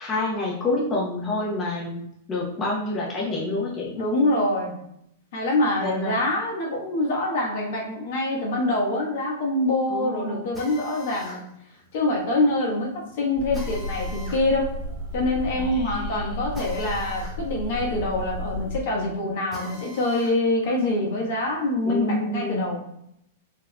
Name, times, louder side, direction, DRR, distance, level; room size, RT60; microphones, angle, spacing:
voice 1, 0.0-3.9 5.8-6.2 9.9-10.5 15.6-16.5 21.8-22.8, left 2 dB, 20° left, -5 dB, 0.8 m, -28 dB
voice 2, 3.9-4.7 5.3-11.4 11.9-12.9 13.2-14.7 15.1-22.8, left 2 dB, 60° left, -3 dB, 1.2 m, -25 dB
Drill, 10.5-20.4 20.8-22.4, left 1 dB, ahead, 1.3 m, -45 dB
sound 1, 13.4-18.8, left 1 dB, 50° right, 1.2 m, -33 dB
4.5 x 2.7 x 2.3 m, 0.75 s
hypercardioid pair, 140°, 0 cm